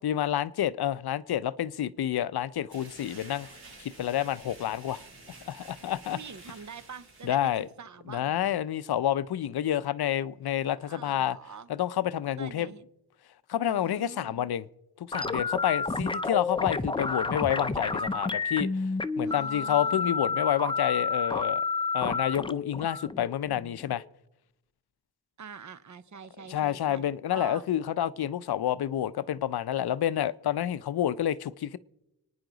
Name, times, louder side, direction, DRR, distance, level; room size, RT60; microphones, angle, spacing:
voice 1, 0.0-3.5 3.8-5.0 5.5-6.2 7.2-7.7 8.1-11.4 11.7-12.7 13.5-14.7 15.0-18.8 19.2-21.6 21.9-24.0 26.5-31.8, left 11 dB, 80° left, 0.6 m, -29 dB
sound 1, 2.7-7.7, right 3 dB, 75° right, 3.8 m, -50 dB
voice 2, 6.1-7.5 7.8-8.4 10.8-11.7 12.4-12.9 13.7-14.5 19.2-20.2 25.4-27.6, right 6 dB, 50° right, 0.7 m, -45 dB
sound 2, 15.1-24.0, left 4 dB, 15° left, 0.5 m, -30 dB
26.0 x 9.7 x 3.9 m
wide cardioid pair, 100°, 38 cm